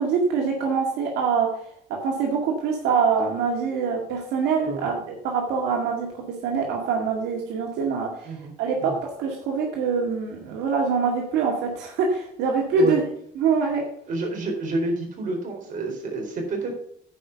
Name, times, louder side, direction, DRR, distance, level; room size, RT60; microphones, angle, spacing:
voice 1, 0.0-1.5 2.0-6.1 6.4-8.3 8.6-13.0 13.4-13.8, right 5 dB, 90° right, 0 dB, 2.0 m, -24 dB
voice 2, 14.1-16.7, right 2 dB, 50° right, 1 dB, 4.1 m, -29 dB
9.9 x 5.4 x 6.8 m, 0.66 s
cardioid pair, 110°, 17 cm